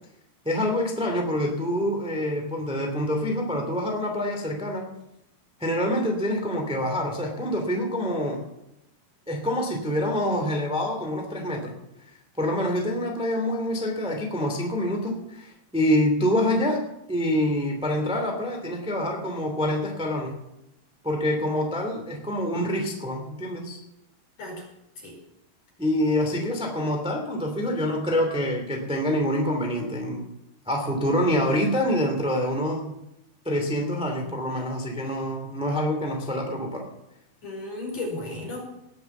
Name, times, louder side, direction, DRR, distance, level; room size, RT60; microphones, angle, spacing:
voice 1, 0.4-4.9 5.6-8.4 9.3-11.7 12.4-16.8 17.1-20.4 21.0-23.8 25.8-30.3 30.6-33.0 33.4-36.9, equal, ahead, 1 dB, 1.7 m, -26 dB
voice 2, 37.4-38.6, left 2 dB, 40° left, -1 dB, 5.8 m, -34 dB
19.5 x 7.3 x 7.2 m, 0.85 s
omnidirectional pair, 4.5 m